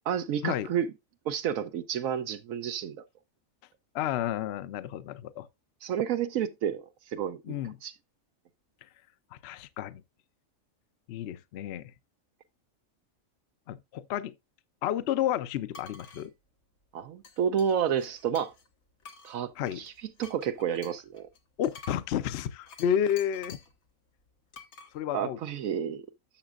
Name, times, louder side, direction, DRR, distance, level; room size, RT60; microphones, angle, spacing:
voice 1, 0.1-0.9 1.3-3.0 5.8-7.9 16.9-18.5 19.2-19.9 20.2-21.3 25.1-26.0, right 8 dB, 80° right, 1.1 m, -30 dB
voice 2, 3.9-5.5 7.5-7.8 9.3-10.0 11.1-11.9 13.7-14.3 14.8-16.3 19.6-19.8 21.6-23.6 24.9-25.4, left 10 dB, 60° left, 0.7 m, -31 dB
sound 1, 15.7-16.3 17.2-18.7 19.0-23.8 24.5-24.9, left 4 dB, 85° left, 1.7 m, -50 dB
11.5 x 7.1 x 2.4 m
omnidirectional pair, 1.4 m